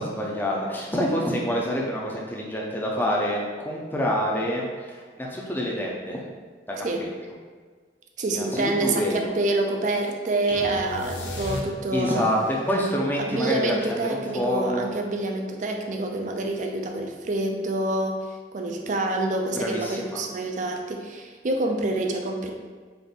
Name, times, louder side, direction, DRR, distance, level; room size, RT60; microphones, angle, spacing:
voice 1, 0.0-6.2 6.7-7.1 8.3-9.3 11.9-13.8 14.0-14.9 19.6-20.2, equal, 10° left, -3 dB, 0.5 m, -27 dB
voice 2, 6.8-7.1 8.2-12.2 13.2-22.5, right 2 dB, 45° right, 3 dB, 0.4 m, -27 dB
sound 1, 10.5-12.2, left 2 dB, 75° left, 0.6 m, -34 dB
4.0 x 2.5 x 3.5 m, 1.5 s
head